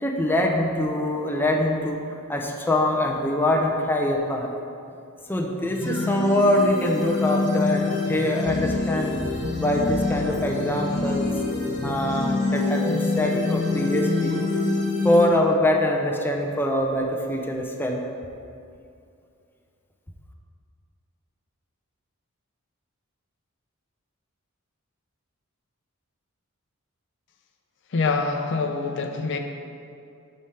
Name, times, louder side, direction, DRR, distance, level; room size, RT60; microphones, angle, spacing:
voice 1, 0.0-4.5 5.3-11.3 11.8-14.6 15.0-18.0, left 1 dB, 10° left, 0 dB, 0.5 m, -24 dB
sound 1, 5.6-15.2, left 3 dB, 35° left, 1.1 m, -26 dB
voice 2, 27.9-29.4, left 4 dB, 60° left, 5 dB, 0.5 m, -25 dB
8.8 x 3.3 x 5.6 m, 2.5 s
head